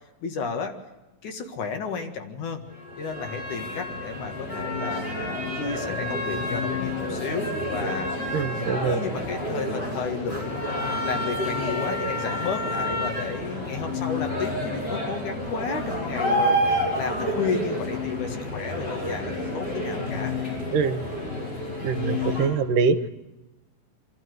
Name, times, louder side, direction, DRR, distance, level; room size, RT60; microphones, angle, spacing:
voice 1, 0.2-0.7 1.2-2.6 3.0-8.1 8.6-20.4 23.0-23.1, left 5 dB, 65° left, 5 dB, 3.0 m, -32 dB
sound 1, 2.7-22.5, left 1 dB, 25° left, 8.0 m, -29 dB
voice 2, 8.3-9.0 20.7-21.0 21.8-23.0, right 5 dB, 75° right, 11 dB, 2.3 m, -24 dB
26.0 x 13.0 x 7.9 m, 1.1 s
omnidirectional pair, 4.0 m